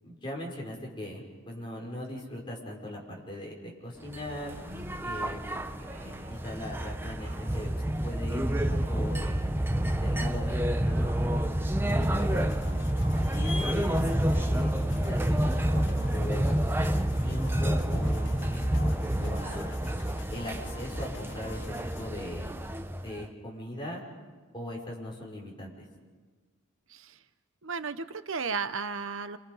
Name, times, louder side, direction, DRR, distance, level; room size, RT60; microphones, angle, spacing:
voice 1, 0.0-3.0 3.3-4.5 5.0-7.7 8.0-9.4 10.0-12.5 13.3-19.8 20.3-22.5 23.0-24.0 24.5-25.8, left 1 dB, 25° left, -2 dB, 5.8 m, -40 dB
sound 1, 4.1-23.3, right 1 dB, 10° right, 0.7 m, -29 dB
sound 2, 4.5-5.3 5.8-7.7 8.1-9.1 9.7-10.3 10.6-11.4 12.2-13.0 13.8-14.7 15.5-16.2 16.8-17.5 18.0-18.6 19.0-20.1, equal, 45° right, 5.4 m, -51 dB
sound 3, 11.9-22.1, left 3 dB, 60° left, 2.1 m, -46 dB
voice 2, 27.6-29.4, right 5 dB, 75° right, 11 dB, 0.9 m, -34 dB
29.0 x 28.0 x 5.6 m, 1.4 s
head